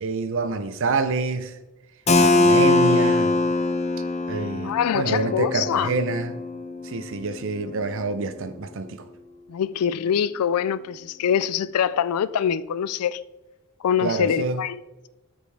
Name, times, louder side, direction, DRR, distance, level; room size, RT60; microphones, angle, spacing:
voice 1, 0.0-1.5 2.2-3.3 4.3-6.4 6.8-9.0 14.0-14.6, right 3 dB, 60° right, 0.6 m, -27 dB
Keyboard (musical), 2.1-7.6, left 2 dB, 30° left, 0.6 m, -22 dB
voice 2, 4.6-5.9 9.5-13.2 13.8-14.8, left 8 dB, 85° left, 0.4 m, -24 dB
12.5 x 5.3 x 3.4 m
head